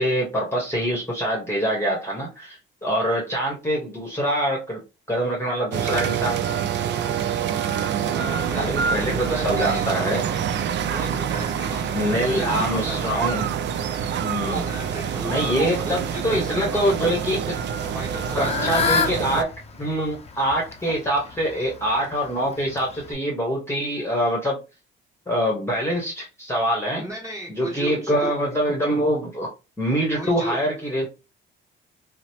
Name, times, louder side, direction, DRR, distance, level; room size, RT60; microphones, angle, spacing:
voice 1, 0.0-4.8 5.1-6.4 8.5-10.2 11.9-13.5 14.2-14.7 15.3-17.6 18.4-19.5 19.8-24.6 25.3-27.0 27.5-29.5 29.8-31.1, equal, 10° left, -2 dB, 1.1 m, -24 dB
sound 1, 5.7-19.4, right 8 dB, 65° right, 0.4 m, -26 dB
voice 2, 7.9-10.0 10.9-13.0 14.5-17.1 17.9-19.0 26.9-28.3 30.1-30.6, equal, 15° right, -2 dB, 1.6 m, -36 dB
Fowl / Bird, 17.8-23.1, left 5 dB, 30° left, 0.6 m, -29 dB
2.9 x 2.1 x 2.8 m, 0.28 s
cardioid pair, 90°, 20 cm